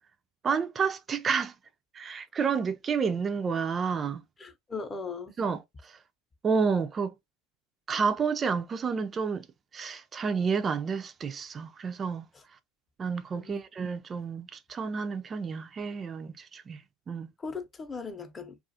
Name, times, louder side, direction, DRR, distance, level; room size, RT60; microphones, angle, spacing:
voice 1, 0.4-1.5 1.9-4.2 5.4-6.0 6.4-7.1 7.9-9.5 9.7-12.3 13.0-17.3, right 5 dB, 30° right, 0.4 m, -30 dB
voice 2, 4.4-5.3 12.3-12.4 13.3-13.6 17.4-18.6, left 4 dB, 25° left, 0.7 m, -38 dB
2.4 x 2.3 x 2.6 m
hypercardioid pair, 90°, 0 cm